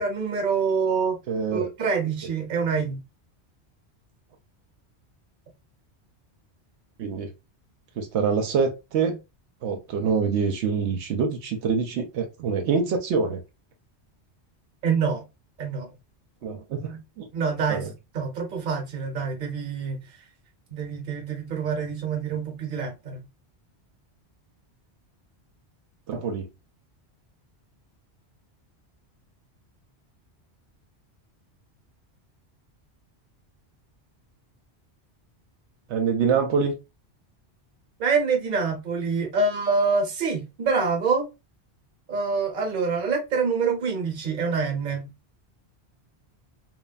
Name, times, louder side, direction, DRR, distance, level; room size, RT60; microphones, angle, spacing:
voice 1, 0.0-1.2 1.5-3.0 14.8-15.2 15.6-15.9 17.3-17.9 18.1-20.0 20.7-23.2 38.0-41.3 42.1-45.1, right 5 dB, 50° right, 0.9 m, -26 dB
voice 2, 1.3-1.7 7.0-7.3 8.0-9.2 9.6-13.4 16.4-17.3 17.7-17.9 26.1-26.5 35.9-36.7, right 5 dB, 85° right, 0.9 m, -25 dB
3.1 x 2.2 x 2.3 m
omnidirectional pair, 1.1 m